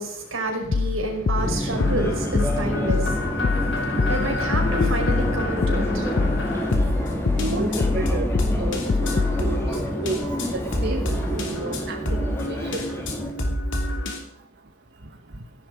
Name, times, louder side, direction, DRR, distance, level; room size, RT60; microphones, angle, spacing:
voice 1, 0.0-6.6, right 1 dB, 75° right, 2 dB, 5.3 m, -29 dB
sound 1, 0.7-9.4, left 4 dB, 50° left, 0.4 m, -25 dB
Subway metro underground, 1.3-13.3, equal, 15° left, 3.1 m, -28 dB
sound 2, 1.8-14.2, left 1 dB, 65° left, 3.1 m, -30 dB
voice 2, 7.4-8.3 8.6-9.7 10.0-10.2 10.8-12.0 12.4-12.8, right 2 dB, 55° right, 3 dB, 1.4 m, -31 dB
17.0 x 10.5 x 5.1 m, 0.79 s
head